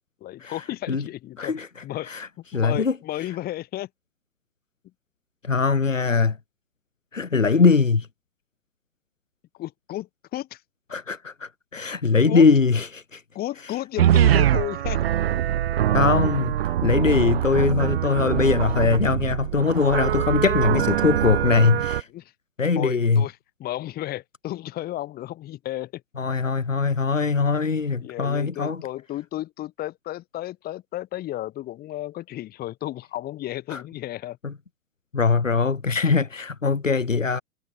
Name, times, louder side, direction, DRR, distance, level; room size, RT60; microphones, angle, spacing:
voice 1, 0.2-1.5 1.8-3.9 9.5-10.6 12.3-12.4 13.3-15.0 22.1-22.3 22.7-26.0 28.0-34.4, left 14 dB, 25° left, 6.8 m, -33 dB
voice 2, 2.5-2.9 5.4-6.4 7.1-8.1 10.9-13.2 15.9-22.1 22.6-23.2 26.2-28.8 33.7-33.8 34.4-34.5 35.1-37.4, left 4 dB, 80° left, 1.5 m, -21 dB
sound 1, 14.0-22.0, right 11 dB, 50° right, 4.3 m, -23 dB
figure-of-eight pair, 110°, 38 cm